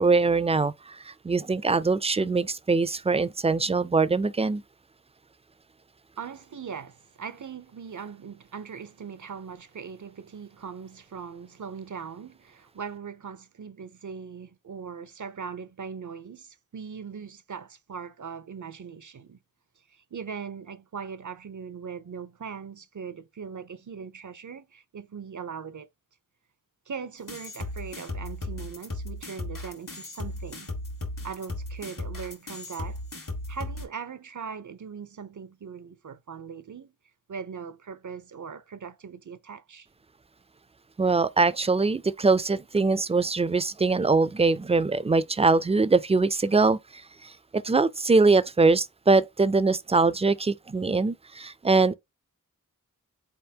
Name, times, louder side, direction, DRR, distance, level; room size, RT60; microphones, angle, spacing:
voice 1, 0.0-4.6 41.0-46.8 47.5-51.9, right 3 dB, 20° right, 0.3 m, -22 dB
voice 2, 6.2-19.4 19.9-25.9 26.9-30.7 31.2-33.0 33.5-36.9 37.3-39.9, right 6 dB, 65° right, 0.6 m, -40 dB
sound 1, 27.3-33.9, left 1 dB, 70° left, 1.5 m, -36 dB
4.2 x 3.5 x 2.8 m
wide cardioid pair, 50°, 33 cm